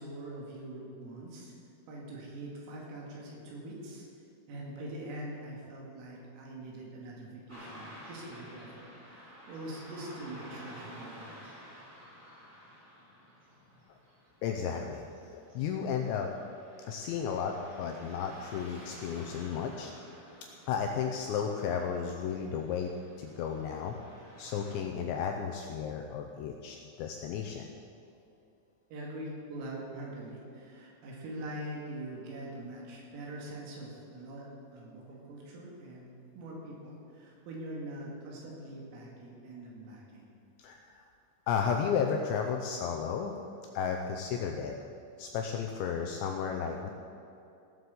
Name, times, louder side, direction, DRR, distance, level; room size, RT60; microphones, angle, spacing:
voice 1, 0.0-1.5 1.9-4.0 4.5-11.5 28.9-40.3, right 1 dB, 80° right, -3 dB, 4.8 m, -43 dB
Car passing by / Traffic noise roadway noise, 7.5-24.8, equal, 20° right, 3.4 m, -52 dB
voice 2, 14.4-15.1 15.3-16.3 16.9-19.9 20.7-22.9 23.2-24.0 24.4-27.7 40.6-41.1 41.5-43.4 43.7-44.7 45.2-46.9, left 7 dB, 80° left, 3 dB, 2.6 m, -33 dB
17.5 x 7.8 x 6.9 m, 2.7 s
omnidirectional pair, 5.9 m